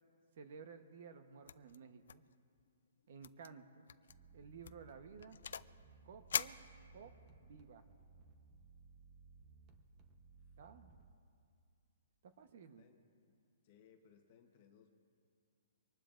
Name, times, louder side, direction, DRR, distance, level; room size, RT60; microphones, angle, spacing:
voice 1, 0.4-2.2 3.1-3.9 4.3-5.4 6.0-6.6 6.9-7.1 7.4-7.8 10.6-10.9 12.2-12.9, right 6 dB, 45° right, 9 dB, 1.0 m, -55 dB
sound 1, 1.5-1.8 2.1-2.6 3.2-3.5 3.9-4.1 4.6-5.8 6.3-7.3, left 7 dB, 65° left, 0.4 m, -42 dB
sound 2, 4.1-11.1, right 4 dB, 20° right, 0.9 m, -62 dB
voice 2, 12.5-13.0 13.3-13.4 13.6-15.0, left 7 dB, 30° left, 4 dB, 1.1 m, -67 dB
24.5 x 19.0 x 2.6 m, 2.3 s
hypercardioid pair, 175°, 0 cm